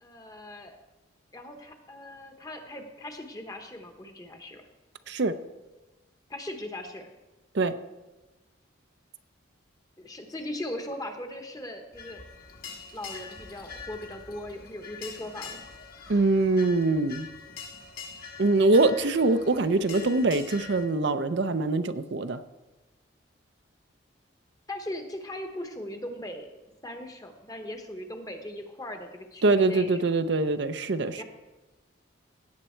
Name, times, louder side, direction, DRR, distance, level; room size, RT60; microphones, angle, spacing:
voice 1, 0.0-0.8 1.3-4.6 6.3-7.1 10.0-12.3 12.9-15.6 24.7-30.1 31.2-31.3, left 1 dB, 20° left, 5 dB, 1.0 m, -39 dB
voice 2, 5.1-5.4 7.5-7.8 16.1-17.3 18.4-22.4 29.4-31.2, right 3 dB, 60° right, 10 dB, 0.5 m, -23 dB
sound 1, 11.9-20.9, left 6 dB, 50° left, 1.4 m, -44 dB
17.0 x 7.5 x 4.4 m, 1.1 s
head